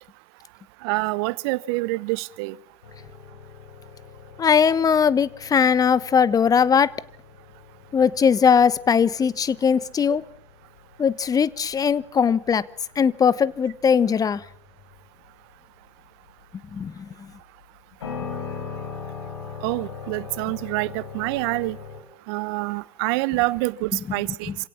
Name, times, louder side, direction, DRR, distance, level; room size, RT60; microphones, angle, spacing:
voice 1, 0.8-2.5 19.6-21.8 22.3-24.5, right 22 dB, 60° right, 20 dB, 1.0 m, -26 dB
sound 1, 2.8-22.0, left 5 dB, 80° left, 5.4 m, -41 dB
voice 2, 4.4-6.9 7.9-10.2 11.0-12.6 13.0-14.4 16.7-17.1 23.9-24.0 24.5-24.6, left 7 dB, 25° left, 19 dB, 1.1 m, -20 dB
27.0 x 17.5 x 7.2 m, 0.64 s
hypercardioid pair, 80°, 14 cm